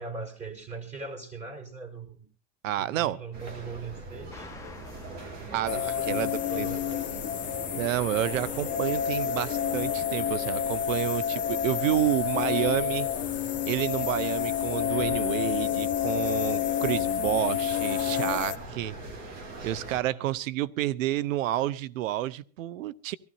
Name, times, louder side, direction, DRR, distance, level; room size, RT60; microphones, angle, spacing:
voice 1, 0.0-2.3 2.8-4.5 5.3-7.1 20.1-20.4, right 4 dB, 20° right, 5.3 m, -40 dB
voice 2, 2.6-3.2 5.5-6.7 7.7-13.1 13.7-18.9 19.6-23.2, right 14 dB, 90° right, 0.8 m, -29 dB
sound 1, 3.3-20.0, right 2 dB, 45° right, 3.7 m, -42 dB
sound 2, 4.3-9.7, left 3 dB, 10° left, 1.1 m, -51 dB
sound 3, 5.7-18.6, left 10 dB, 30° left, 0.9 m, -29 dB
23.5 x 15.5 x 2.7 m
supercardioid pair, 125°, 38 cm